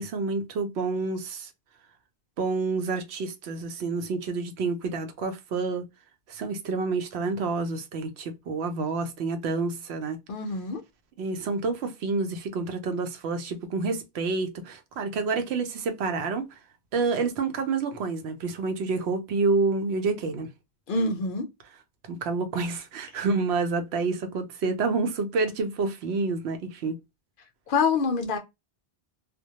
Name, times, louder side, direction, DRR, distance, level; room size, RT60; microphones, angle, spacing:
voice 1, 0.0-1.5 2.4-5.8 6.3-10.2 11.2-16.6 16.9-20.5 22.1-27.0, right 4 dB, 80° right, 0.8 m, -28 dB
voice 2, 10.3-10.8 20.9-21.5 27.7-28.4, left 4 dB, 60° left, 0.7 m, -26 dB
2.1 x 2.1 x 2.7 m
omnidirectional pair, 1.1 m